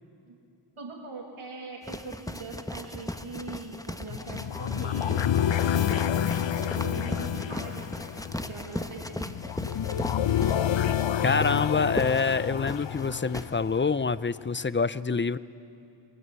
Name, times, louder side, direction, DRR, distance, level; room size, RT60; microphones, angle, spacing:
voice 1, 0.8-5.3 5.6-7.9 8.5-9.3, right 3 dB, 80° right, 1 dB, 2.4 m, -41 dB
sound 1, 1.8-13.5, left 1 dB, 5° left, 1.0 m, -37 dB
sound 2, 4.1-14.2, left 10 dB, 65° left, 0.7 m, -29 dB
voice 2, 11.2-15.4, left 4 dB, 25° left, 16 dB, 0.6 m, -26 dB
28.0 x 23.0 x 8.3 m, 2.7 s
wide cardioid pair, 65°, 49 cm